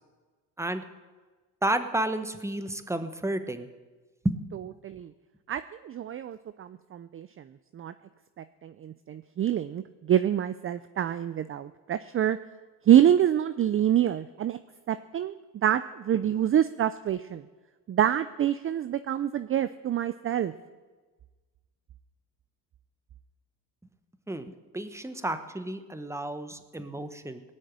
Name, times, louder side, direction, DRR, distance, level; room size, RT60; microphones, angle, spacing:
voice 1, 1.6-3.7 4.2-4.8 24.3-27.4, right 1 dB, 5° right, 9 dB, 1.2 m, -31 dB
voice 2, 5.5-7.5 7.7-7.9 8.4-12.4 12.9-14.6 14.9-17.4 17.9-20.5, right 10 dB, 35° right, 12 dB, 0.5 m, -26 dB
19.0 x 6.5 x 9.0 m, 1.3 s
cardioid pair, 95°, 40 cm